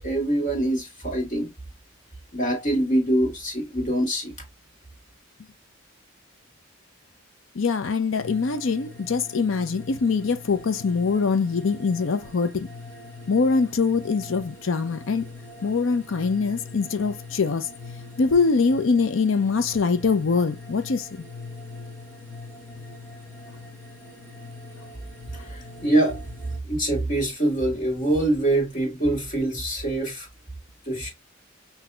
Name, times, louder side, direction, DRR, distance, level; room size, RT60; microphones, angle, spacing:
voice 1, 0.0-1.5 2.3-4.3 25.4-26.2 26.7-30.3 30.9-31.1, right 1 dB, 40° left, 1.8 m, -24 dB
voice 2, 7.5-12.7 13.3-15.3 15.6-17.7 18.2-21.2, left 4 dB, 70° left, 0.5 m, -23 dB
sound 1, 8.2-26.6, left 2 dB, 10° left, 0.9 m, -43 dB
5.9 x 2.7 x 2.3 m
head